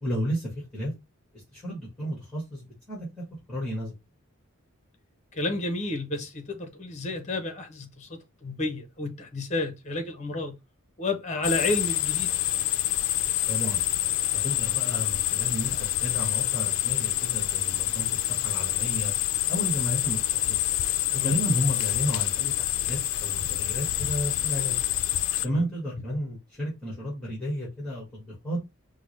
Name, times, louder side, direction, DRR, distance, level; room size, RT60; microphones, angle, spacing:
voice 1, 0.0-0.9 1.5-3.1 3.5-3.9 13.5-13.8 14.4-15.7 16.0-19.1 19.5-20.2 20.5-20.6 21.1-24.8 25.4-28.6, equal, 5° left, 1.4 m, -32 dB
voice 2, 5.3-10.6 11.0-12.4 21.1-21.4 25.5-25.6, left 2 dB, 35° left, 0.7 m, -31 dB
sound 1, 11.4-25.5, left 13 dB, 70° left, 0.3 m, -27 dB
4.7 x 2.1 x 3.1 m
head